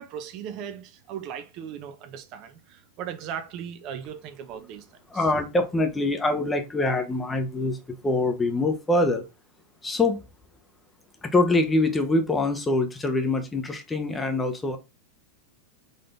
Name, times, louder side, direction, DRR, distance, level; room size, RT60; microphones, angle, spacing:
voice 1, 0.0-4.9 5.1-5.2, right 8 dB, 50° right, 0.7 m, -37 dB
voice 2, 5.1-9.2 9.8-10.2 11.2-14.8, left 2 dB, 15° left, 1.0 m, -24 dB
4.1 x 3.7 x 3.4 m
hypercardioid pair, 100°, 0 cm